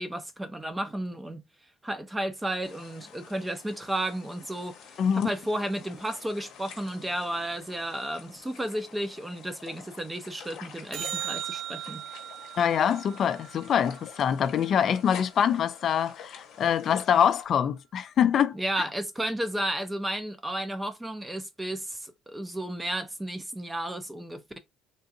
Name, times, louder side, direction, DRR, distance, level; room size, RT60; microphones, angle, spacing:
voice 1, 0.0-1.4 1.8-12.1 18.5-24.6, right 1 dB, 10° right, 0.6 m, -33 dB
sound 1, 2.6-17.4, left 7 dB, 65° left, 1.0 m, -48 dB
voice 2, 5.0-5.3 12.6-18.6, left 8 dB, 50° left, 0.3 m, -24 dB
sound 2, 10.9-15.4 21.9-22.0, right 10 dB, 60° right, 0.4 m, -39 dB
3.6 x 2.6 x 2.6 m
cardioid pair, 115°, 0 cm